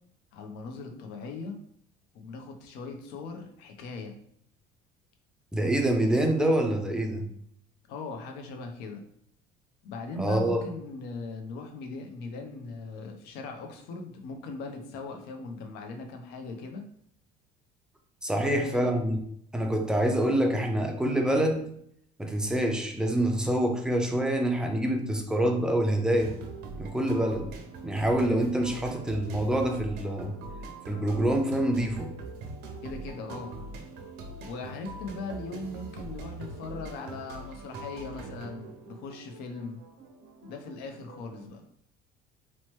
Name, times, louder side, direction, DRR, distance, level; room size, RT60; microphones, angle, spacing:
voice 1, 0.3-1.6 2.1-4.2 7.9-9.0 9.8-16.9 18.4-18.9 32.8-33.5 34.4-39.8 40.4-41.6, left 3 dB, 70° left, 4 dB, 0.6 m, -39 dB
voice 2, 5.5-7.3 10.2-10.6 18.2-19.2 19.5-21.6 22.2-26.4 26.8-27.5 27.8-30.3 30.9-32.1, right 1 dB, 5° right, 3 dB, 0.3 m, -26 dB
sound 1, 26.2-41.5, right 3 dB, 75° right, 0.6 m, -42 dB
2.9 x 2.1 x 3.0 m, 0.68 s
cardioid pair, 120°, 17 cm